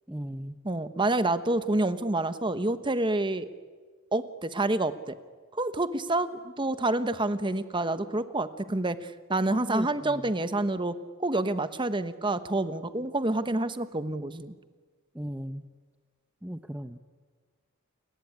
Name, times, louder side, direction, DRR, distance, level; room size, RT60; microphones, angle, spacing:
voice 1, 0.1-0.6 9.7-10.2 15.1-15.6 16.4-17.0, equal, 5° right, 8 dB, 0.8 m, -37 dB
voice 2, 0.6-3.5 4.1-5.2 5.6-14.5, right 2 dB, 25° right, 11 dB, 1.1 m, -28 dB
30.0 x 20.0 x 9.8 m, 1.5 s
head